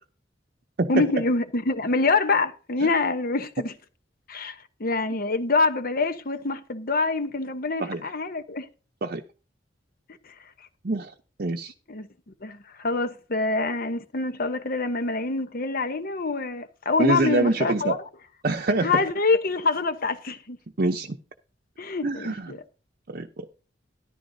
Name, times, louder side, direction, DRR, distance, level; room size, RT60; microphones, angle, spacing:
voice 1, 0.9-3.7 4.3-8.6 11.9-12.1 12.4-18.0 18.8-20.6 21.8-22.6, left 3 dB, 50° left, 1.0 m, -25 dB
voice 2, 7.8-8.1 9.0-9.2 10.8-11.1 11.4-11.7 17.0-18.0 18.4-19.0 20.8-21.2 22.0-22.5 23.1-23.5, right 2 dB, 55° right, 0.7 m, -25 dB
13.5 x 11.0 x 2.7 m
head